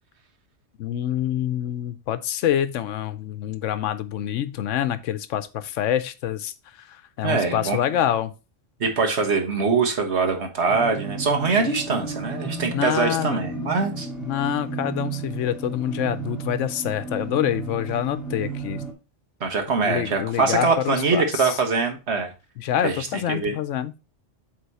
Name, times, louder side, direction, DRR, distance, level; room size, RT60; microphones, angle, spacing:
voice 1, 0.8-8.3 12.7-13.4 14.2-18.8 19.8-21.6 22.6-23.9, left 11 dB, 80° left, 1.0 m, -26 dB
voice 2, 7.2-7.8 8.8-14.1 19.4-22.3 22.8-23.5, right 4 dB, 65° right, 1.6 m, -23 dB
sound 1, 10.7-18.9, right 4 dB, ahead, 1.8 m, -33 dB
8.1 x 3.7 x 4.1 m
omnidirectional pair, 1.3 m